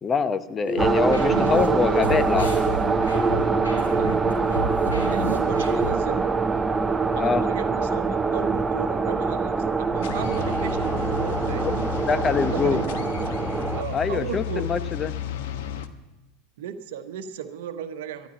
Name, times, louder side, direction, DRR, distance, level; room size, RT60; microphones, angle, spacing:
voice 1, 0.0-2.6 7.1-7.5 11.6-11.7 12.1-12.8 13.9-15.2, left 5 dB, 25° left, 12 dB, 0.9 m, -24 dB
sound 1, 0.6-5.9, equal, 85° left, 4.6 m, -29 dB
sound 2, 0.8-13.8, right 4 dB, 15° right, 0.7 m, -24 dB
voice 2, 5.1-6.3 7.1-11.8 12.5-13.0 13.7-14.7 16.6-18.3, right 9 dB, 65° right, 8 dB, 1.1 m, -35 dB
sound 3, 10.0-15.9, left 9 dB, 60° left, 1.0 m, -32 dB
13.5 x 12.0 x 8.2 m, 0.99 s
figure-of-eight pair, 85°, 0 cm